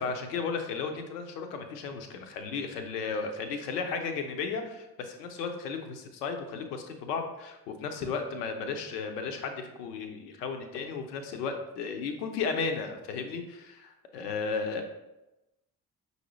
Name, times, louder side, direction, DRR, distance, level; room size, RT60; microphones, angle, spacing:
voice 1, 0.0-14.8, left 5 dB, 80° left, 6 dB, 0.6 m, -34 dB
5.7 x 2.7 x 3.0 m, 0.97 s
figure-of-eight pair, 45°, 47 cm